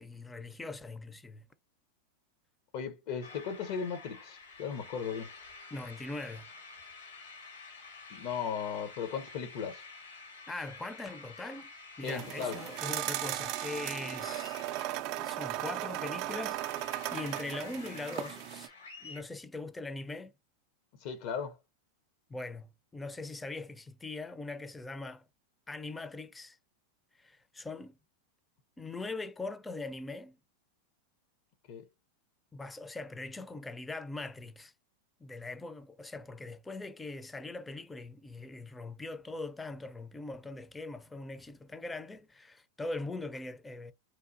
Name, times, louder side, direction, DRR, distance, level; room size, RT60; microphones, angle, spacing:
voice 1, 0.0-1.5 5.7-6.5 10.5-11.7 12.0-14.6 15.2-18.7 19.0-20.3 22.3-25.3 25.7-26.6 27.2-28.0 28.8-30.4 32.5-34.7 35.2-43.9, left 2 dB, 10° left, 0.4 m, -41 dB
voice 2, 2.7-5.3 8.1-9.8 12.0-12.6 21.0-21.6 31.7-31.8, left 6 dB, 55° left, 0.6 m, -36 dB
sound 1, 3.2-19.2, left 4 dB, 90° left, 1.4 m, -50 dB
sound 2, 12.0-18.7, right 15 dB, 50° right, 0.3 m, -37 dB
2.9 x 2.3 x 2.5 m
hypercardioid pair, 95°, 0 cm